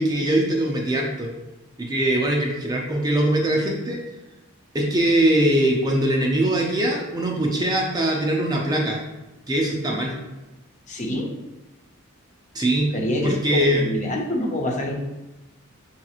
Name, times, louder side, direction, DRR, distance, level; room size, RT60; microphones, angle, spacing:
voice 1, 0.0-1.3 1.8-4.0 4.7-9.0 9.5-10.1 12.5-12.9 13.2-13.9, right 1 dB, 15° right, 0 dB, 0.4 m, -22 dB
voice 2, 10.9-11.3 12.9-14.9, left 1 dB, 35° left, 0 dB, 0.6 m, -26 dB
6.1 x 2.9 x 2.4 m, 1.0 s
head